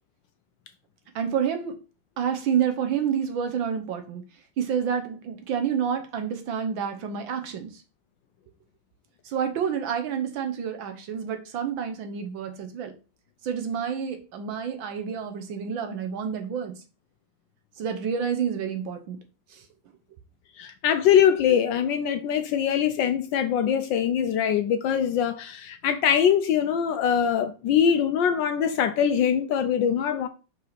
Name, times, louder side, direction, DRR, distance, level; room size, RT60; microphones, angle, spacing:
voice 1, 1.1-1.8 2.2-4.2 4.6-7.8 9.2-12.9 13.4-16.8 17.8-19.2 19.5-19.6, right 7 dB, 70° right, 1.6 m, -29 dB
voice 2, 20.6-30.3, left 8 dB, 75° left, 1.2 m, -23 dB
5.7 x 4.7 x 4.1 m
omnidirectional pair, 2.4 m